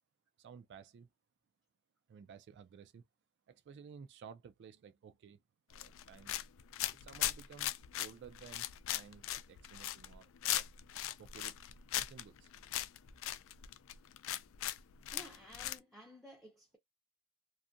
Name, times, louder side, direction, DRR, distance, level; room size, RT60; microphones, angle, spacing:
voice 1, 0.4-1.1 2.1-3.1 3.5-5.4 5.7-6.4 7.0-10.7 11.2-11.6 11.9-12.5, right 6 dB, 55° right, 0.3 m, -55 dB
sound 1, 5.7-15.8, left 13 dB, 65° left, 0.3 m, -39 dB
voice 2, 15.1-16.8, left 1 dB, ahead, 0.5 m, -54 dB
2.6 x 2.4 x 2.5 m
head